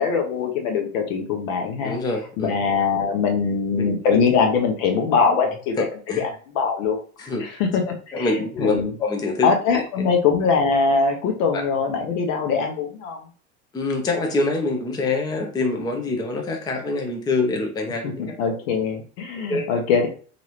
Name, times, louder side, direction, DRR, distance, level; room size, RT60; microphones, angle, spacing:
voice 1, 0.0-2.0 2.4-5.8 6.2-8.3 8.6-8.9 9.4-13.2 18.0-20.1, left 5 dB, 60° left, 4 dB, 1.0 m, -22 dB
voice 2, 1.8-2.6 3.7-3.9 4.9-5.0 5.8-6.2 7.3-7.5 8.1-9.8 11.5-11.6 13.7-18.3 19.5-19.7, left 3 dB, 10° left, 3 dB, 0.5 m, -25 dB
3.9 x 2.6 x 3.1 m, 0.42 s
figure-of-eight pair, 80°, 45 cm